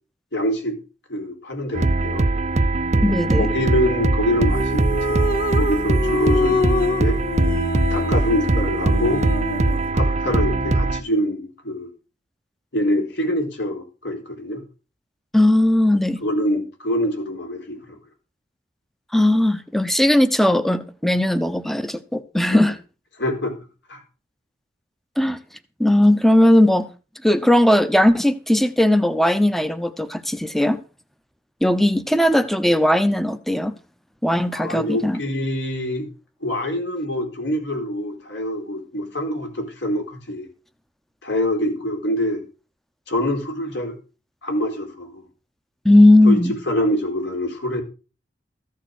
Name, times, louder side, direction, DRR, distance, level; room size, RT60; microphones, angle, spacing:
voice 1, 0.3-0.8 1.1-2.3 3.3-5.3 5.5-7.2 7.9-9.2 9.9-11.9 12.7-14.6 16.2-18.0 22.5-22.6 23.2-23.6 23.9-24.0 34.5-36.1 36.4-40.5 41.2-42.4 43.1-44.0 44.4-45.2 46.2-46.4 46.7-47.8, equal, 75° left, 4.1 m, -25 dB
sound 1, 1.7-11.0, right 2 dB, 40° right, 0.6 m, -21 dB
voice 2, 3.0-3.5 15.3-16.2 19.1-22.8 25.2-25.4 25.8-26.9 27.2-30.8 31.6-33.8 34.2-35.2 45.8-46.5, left 1 dB, ahead, 0.8 m, -17 dB
sound 2, 4.5-9.9, left 2 dB, 50° left, 1.0 m, -25 dB
14.5 x 6.6 x 6.4 m
head